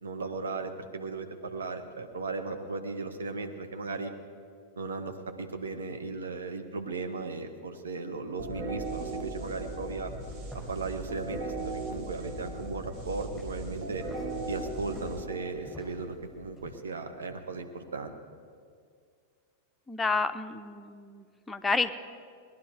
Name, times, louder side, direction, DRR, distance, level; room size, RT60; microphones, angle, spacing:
voice 1, 0.0-4.1 4.8-10.1 10.7-14.0 14.5-18.1, right 3 dB, 70° right, 6 dB, 1.1 m, -36 dB
sound 1, 8.4-16.0, right 2 dB, 40° right, 1.7 m, -38 dB
sound 2, 10.0-16.8, left 1 dB, 10° right, 4.1 m, -52 dB
voice 2, 19.9-21.9, left 4 dB, 10° left, 8 dB, 0.6 m, -30 dB
19.0 x 11.0 x 4.7 m, 2.1 s
figure-of-eight pair, 90°, 0 cm